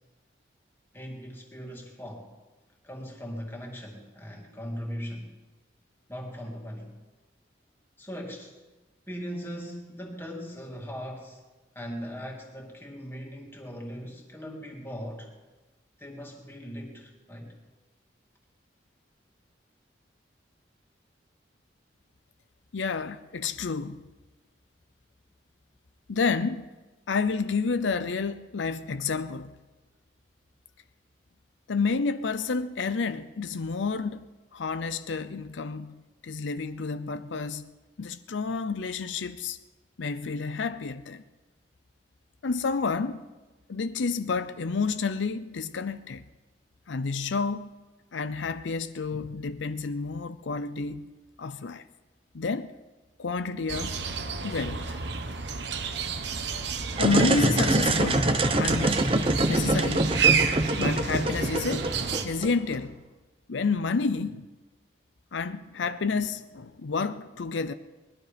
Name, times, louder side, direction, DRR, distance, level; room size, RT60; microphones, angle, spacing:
voice 1, 0.9-2.3 2.8-5.4 6.1-7.0 8.0-8.5 9.1-11.4 11.7-15.3 16.0-17.5, equal, 10° left, 2.2 m, -39 dB
voice 2, 22.7-24.0 26.1-26.7 27.1-29.5 31.7-36.0 36.2-37.7 38.0-39.6 40.0-41.2 42.4-43.3 43.7-46.2 46.9-47.7 48.1-51.1 51.4-51.8 52.3-52.7 53.2-54.0 54.4-55.0 57.0-59.0 59.5-60.2 60.8-61.9 62.2-63.0 63.5-64.5 65.3-67.7, left 4 dB, 80° left, 0.6 m, -30 dB
sound 1, 53.7-62.3, right 6 dB, 65° right, 1.1 m, -30 dB
sound 2, 56.9-62.8, right 1 dB, 30° right, 1.0 m, -25 dB
20.5 x 12.0 x 5.2 m
head